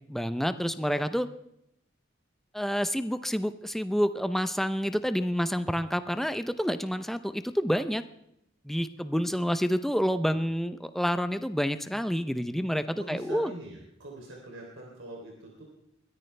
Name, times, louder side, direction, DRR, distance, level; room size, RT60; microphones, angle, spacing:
voice 1, 0.1-1.3 2.5-8.0 8.6-13.5, equal, ahead, 11 dB, 0.6 m, -28 dB
voice 2, 13.0-15.6, right 1 dB, 75° right, -1 dB, 3.3 m, -43 dB
21.5 x 13.5 x 3.3 m, 0.79 s
head